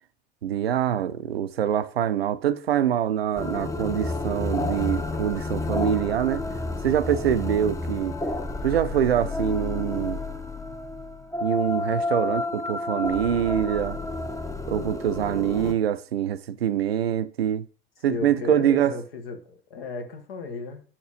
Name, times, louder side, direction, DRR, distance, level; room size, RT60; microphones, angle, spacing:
voice 1, 0.4-6.5 6.8-8.2 8.6-10.2 11.4-14.0 14.7-17.7 18.0-19.0, right 10 dB, 85° right, 0.5 m, -25 dB
sound 1, 3.4-15.7, left 2 dB, 10° left, 0.6 m, -30 dB
voice 2, 18.1-20.8, left 4 dB, 75° left, 1.3 m, -35 dB
5.9 x 4.4 x 4.0 m
hypercardioid pair, 70°, 29 cm